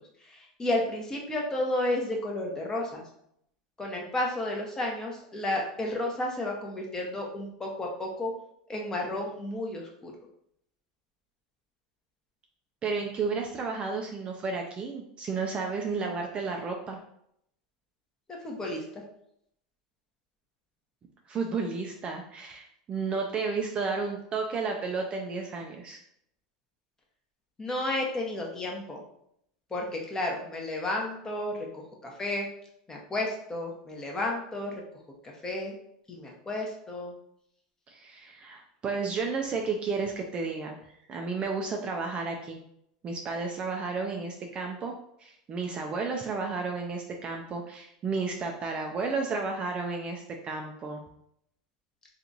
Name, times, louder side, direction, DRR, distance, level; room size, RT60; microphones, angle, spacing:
voice 1, 0.3-3.0 3.8-8.3 8.7-10.1 18.4-18.8 27.6-29.0 29.7-31.8 32.2-32.5 32.9-34.8 35.2-35.7 36.1-37.1, left 1 dB, 15° left, -1 dB, 0.9 m, -32 dB
voice 2, 12.8-17.0 21.3-26.0 37.9-40.8 41.1-42.6 43.0-44.9 45.2-51.0, right 4 dB, 30° right, 2 dB, 0.5 m, -32 dB
2.9 x 2.4 x 3.9 m, 0.72 s
supercardioid pair, 125°, 4 cm